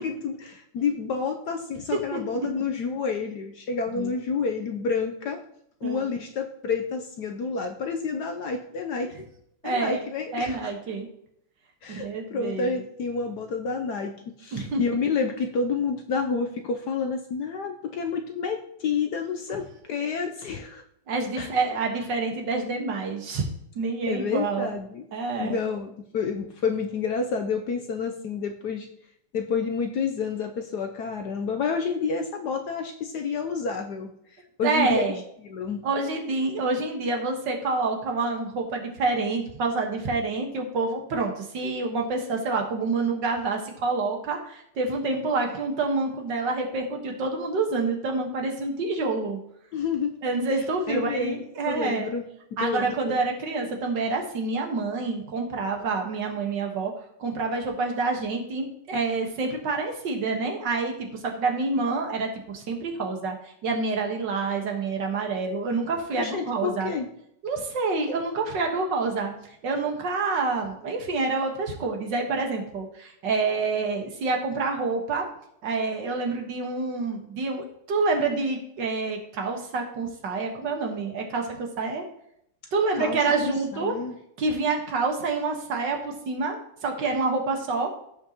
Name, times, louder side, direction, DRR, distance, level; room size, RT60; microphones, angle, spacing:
voice 1, 0.0-5.4 5.8-9.3 9.6-10.7 11.8-14.1 14.4-20.8 21.4-21.5 24.1-25.1 25.4-28.9 29.3-35.1 35.4-35.8 49.7-50.1 50.5-52.2 52.6-53.2 66.2-67.1 82.9-84.2, left 5 dB, 65° left, 4 dB, 1.0 m, -29 dB
voice 2, 2.1-2.5 3.9-4.1 5.8-6.1 9.6-10.0 10.3-11.1 11.9-12.8 14.5-14.8 21.1-23.5 23.8-24.7 25.1-25.6 34.6-35.2 35.8-49.4 50.2-52.1 52.6-56.9 57.2-66.9 67.4-69.3 69.6-75.2 75.6-82.1 82.7-83.9 84.4-87.9, right 3 dB, 55° right, 2 dB, 2.0 m, -27 dB
15.5 x 5.6 x 3.0 m, 0.73 s
omnidirectional pair, 2.4 m